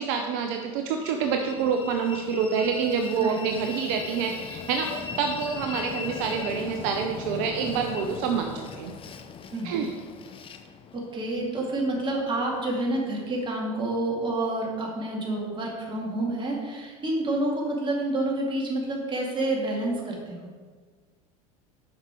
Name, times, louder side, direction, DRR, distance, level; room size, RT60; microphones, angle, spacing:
voice 1, 0.0-8.9 9.6-9.9, right 6 dB, 60° right, 4 dB, 0.6 m, -27 dB
Train, 1.0-13.5, left 6 dB, 30° left, 0.6 m, -39 dB
voice 2, 9.5-9.9 10.9-20.5, right 2 dB, 25° right, -2 dB, 2.2 m, -28 dB
6.7 x 5.5 x 4.5 m, 1.5 s
hypercardioid pair, 90°, 19 cm